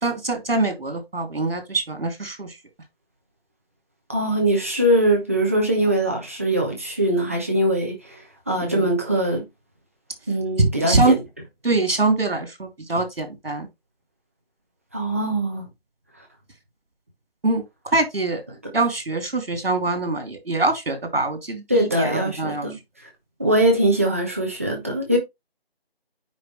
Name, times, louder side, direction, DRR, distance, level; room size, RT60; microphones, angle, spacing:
voice 1, 0.0-2.5 8.6-8.9 10.6-11.2 11.6-13.7 17.4-17.6 17.9-18.4 18.7-22.6, right 2 dB, 65° right, 3.0 m, -23 dB
voice 2, 4.1-8.2 8.5-9.4 10.3-11.2 14.9-15.7 18.6-18.7 21.7-22.8 23.4-25.2, right 1 dB, 15° right, 0.9 m, -22 dB
9.4 x 4.9 x 3.2 m
figure-of-eight pair, 165°, 31 cm